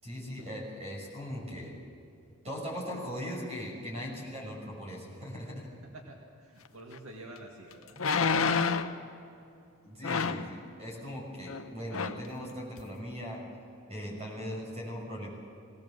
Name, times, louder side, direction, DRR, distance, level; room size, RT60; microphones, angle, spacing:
voice 1, 0.0-1.8 2.4-5.7 9.8-13.4 13.9-15.3, equal, 30° right, -2 dB, 6.6 m, -39 dB
voice 2, 5.8-8.0, right 1 dB, 80° right, 0 dB, 2.0 m, -48 dB
sound 1, 6.9-7.0 8.0-9.0 10.0-10.5 11.5-11.6 11.9-12.3 12.8-12.9, left 5 dB, 75° left, 0.8 m, -28 dB
20.5 x 18.0 x 7.3 m, 2.6 s
head